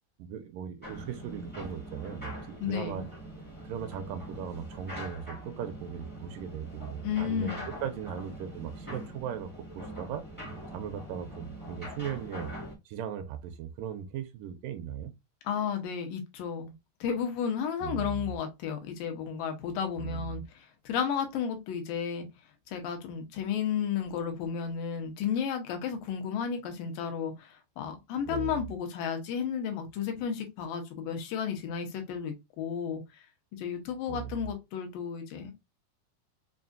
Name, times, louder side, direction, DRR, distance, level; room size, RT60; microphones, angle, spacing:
voice 1, 0.2-3.1 3.6-10.2 10.7-12.5 12.9-15.1 17.8-18.3 20.0-20.3 28.3-28.6 34.1-34.4, right 8 dB, 80° right, 2.2 m, -38 dB
sound 1, 0.8-12.7, right 1 dB, 10° left, 0.5 m, -43 dB
voice 2, 2.6-3.0 7.0-7.6 15.4-16.7 17.0-22.3 22.7-33.3 33.5-35.5, left 7 dB, 80° left, 2.6 m, -33 dB
6.0 x 2.4 x 2.6 m
omnidirectional pair, 4.0 m